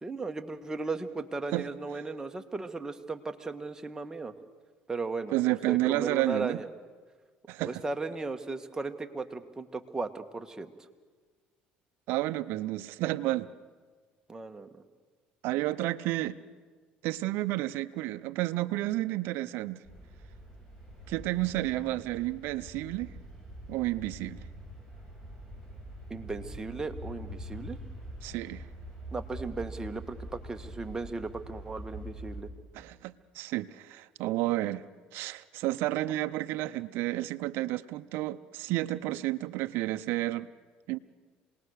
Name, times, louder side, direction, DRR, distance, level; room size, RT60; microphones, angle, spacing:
voice 1, 0.0-4.3 4.9-5.3 5.7-6.7 7.6-10.7 14.3-14.7 26.1-27.8 29.1-32.5, right 3 dB, 15° right, 6 dB, 1.5 m, -36 dB
voice 2, 5.3-6.6 7.5-7.8 12.1-13.5 15.4-16.4 17.0-19.8 21.1-23.1 23.7-24.4 28.2-28.7 32.7-34.8 35.1-40.5 40.9-41.0, right 17 dB, 70° right, 11 dB, 0.7 m, -31 dB
sound 1, 19.8-32.4, equal, 15° left, 7.9 m, -44 dB
26.5 x 19.5 x 6.5 m, 1.5 s
supercardioid pair, 90°, 4 cm